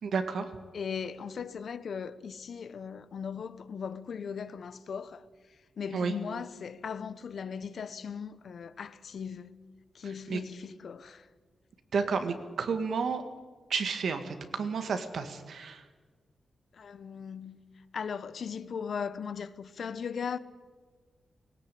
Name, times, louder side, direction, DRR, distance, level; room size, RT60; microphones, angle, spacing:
voice 1, 0.0-0.5 5.9-6.1 10.3-10.4 11.9-13.2 13.7-15.8, right 5 dB, 75° right, 1.9 m, -31 dB
voice 2, 0.7-9.6 9.9-11.3 16.7-17.6 17.9-20.4, left 6 dB, 70° left, 0.9 m, -38 dB
18.5 x 18.0 x 8.5 m
cardioid pair, 90°, 0 cm